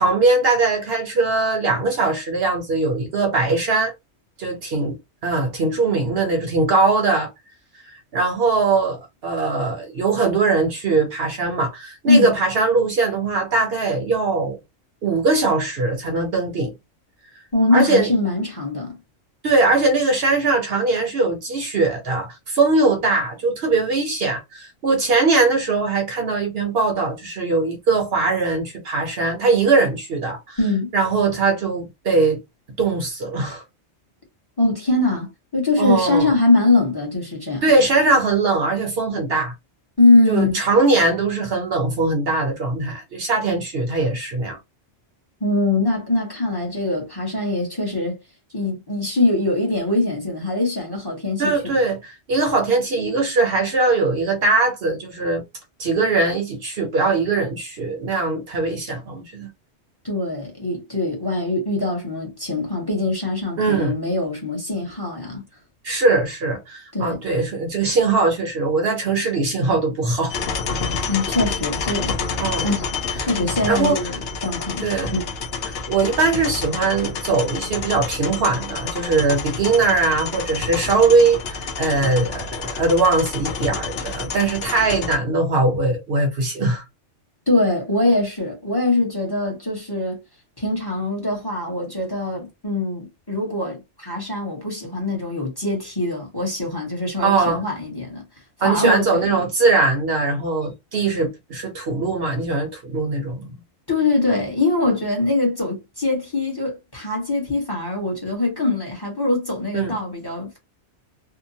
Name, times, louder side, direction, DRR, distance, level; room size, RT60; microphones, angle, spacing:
voice 1, 0.0-3.9 4.4-7.3 8.1-14.6 15.0-16.7 17.7-18.1 19.4-30.6 30.9-32.4 32.8-33.6 35.8-36.3 37.6-39.5 40.3-44.6 51.4-55.4 55.8-59.5 63.6-64.0 65.8-70.3 72.4-72.7 73.7-74.0 74.8-75.2 75.6-86.8 97.2-97.6 98.6-103.5 109.7-110.0, right 3 dB, 60° right, 0.8 m, -20 dB
voice 2, 17.5-19.0 30.6-30.9 34.6-37.6 40.0-40.6 45.4-48.2 48.5-51.8 60.0-65.4 66.9-67.2 71.1-72.2 72.6-72.9 73.2-75.3 87.5-90.2 90.6-98.2 98.6-99.4 103.9-110.6, left 2 dB, 20° left, 0.9 m, -22 dB
sound 1, 70.3-85.2, left 5 dB, 65° left, 0.8 m, -29 dB
2.8 x 2.1 x 2.7 m
omnidirectional pair, 1.2 m